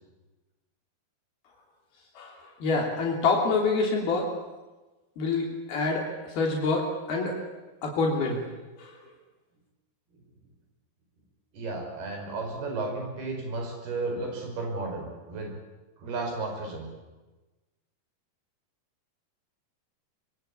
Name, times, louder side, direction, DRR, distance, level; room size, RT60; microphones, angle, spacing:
voice 1, 2.6-4.3 5.2-7.3 7.8-8.4 8.8-8.9, left 3 dB, 75° left, 0 dB, 5.1 m, -26 dB
voice 2, 11.5-15.6 16.0-16.9, right 3 dB, 80° right, 3 dB, 7.5 m, -33 dB
24.5 x 23.0 x 8.7 m, 1.2 s
omnidirectional pair, 4.4 m